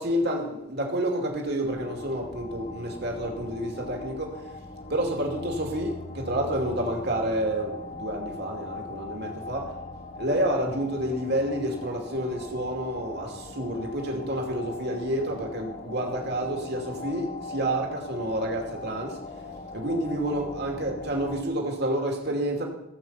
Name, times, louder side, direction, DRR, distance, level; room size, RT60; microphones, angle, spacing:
voice 1, 0.0-4.4 4.9-9.7 10.2-19.2 19.7-22.6, right 1 dB, 50° right, 2 dB, 2.6 m, -29 dB
sound 1, 1.7-21.4, left 2 dB, 35° left, 1.1 m, -41 dB
17.5 x 8.1 x 5.7 m, 0.89 s
head